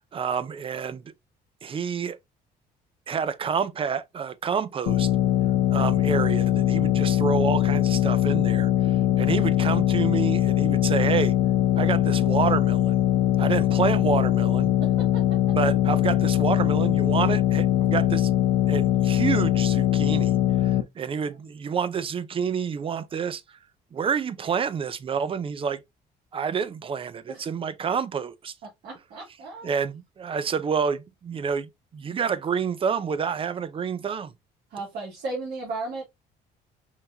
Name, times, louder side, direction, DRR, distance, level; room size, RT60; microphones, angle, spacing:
voice 1, 0.1-1.0 1.6-2.2 3.1-5.1 5.7-11.3 11.7-13.0 13.4-14.7 15.5-18.4 18.7-23.4 23.9-25.8 26.3-28.5 29.6-34.3, right 6 dB, 30° right, 0.5 m, -28 dB
sound 1, 4.9-20.8, left 12 dB, 75° left, 0.6 m, -22 dB
voice 2, 14.8-15.4 27.3-27.5 28.8-29.6 34.7-36.0, right 3 dB, 70° right, 2.1 m, -35 dB
4.6 x 3.4 x 2.6 m
cardioid pair, 110°, 17 cm